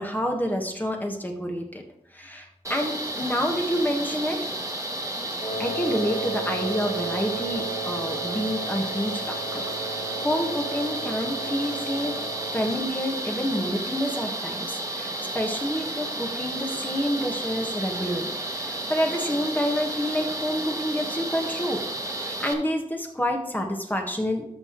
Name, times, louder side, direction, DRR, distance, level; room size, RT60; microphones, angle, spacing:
voice 1, 0.0-1.8 2.1-4.4 5.6-12.1 12.5-18.3 18.6-21.8 22.2-24.5, equal, 15° left, 1 dB, 1.7 m, -28 dB
sound 1, 2.6-22.5, right 1 dB, 25° right, 1.5 m, -32 dB
Wind instrument woodwind instrument, 5.4-12.7, right 4 dB, 40° left, 3.1 m, -34 dB
13.0 x 5.8 x 3.2 m, 0.81 s
wide cardioid pair, 65°, 13 cm